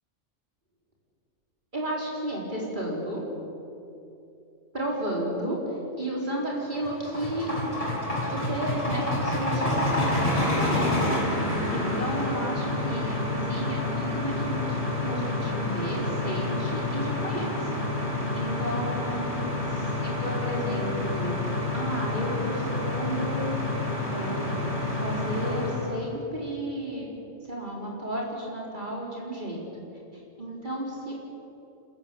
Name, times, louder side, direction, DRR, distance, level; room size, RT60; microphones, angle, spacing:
voice 1, 1.7-3.2 4.7-7.5 8.3-11.2 11.5-14.8 15.0-17.7 18.0-19.3 19.7-23.5 24.1-29.9 30.4-31.1, right 1 dB, 35° right, -3 dB, 4.9 m, -33 dB
sound 1, 6.5-25.9, left 2 dB, 25° left, 6.0 m, -28 dB
26.0 x 14.5 x 8.9 m, 2.8 s
omnidirectional pair, 1.3 m